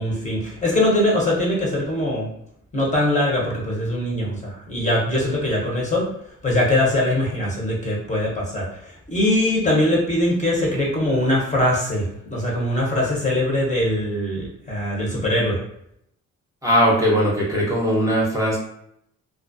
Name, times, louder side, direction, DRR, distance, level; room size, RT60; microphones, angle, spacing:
voice 1, 0.0-2.3 2.7-6.1 6.4-8.6 9.1-15.6, left 1 dB, 25° left, -4 dB, 0.8 m, -22 dB
voice 2, 16.6-18.6, equal, 10° right, -5 dB, 0.7 m, -19 dB
2.3 x 2.0 x 2.5 m, 0.75 s
cardioid pair, 90°, 30 cm